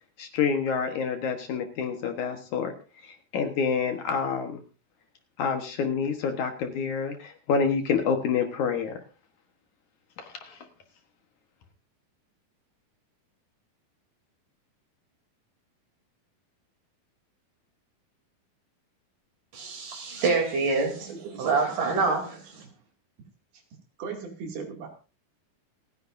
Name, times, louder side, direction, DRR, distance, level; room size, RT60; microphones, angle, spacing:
voice 1, 0.2-2.7 3.0-4.6 5.4-9.0 10.2-10.7, left 6 dB, 60° left, 2.4 m, -28 dB
voice 2, 19.5-21.1 21.4-22.3, right 4 dB, 60° right, 4.6 m, -26 dB
voice 3, 21.0-22.2 22.6-22.7 24.0-24.9, right 5 dB, 80° right, 4.4 m, -37 dB
28.5 x 10.0 x 2.6 m
omnidirectional pair, 4.3 m